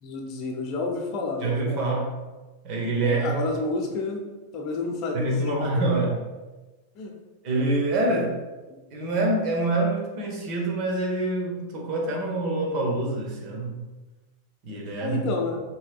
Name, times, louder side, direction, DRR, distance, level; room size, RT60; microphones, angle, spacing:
voice 1, 0.0-1.9 3.0-4.2 4.5-5.7 7.0-7.1 15.0-15.6, left 3 dB, 40° left, 1 dB, 0.7 m, -30 dB
voice 2, 1.4-2.2 2.6-3.4 5.1-6.2 7.4-8.4 8.9-13.8 14.6-15.2, right 2 dB, 40° right, -1 dB, 1.0 m, -26 dB
5.9 x 3.1 x 2.3 m, 1.2 s
figure-of-eight pair, 90°, 0 cm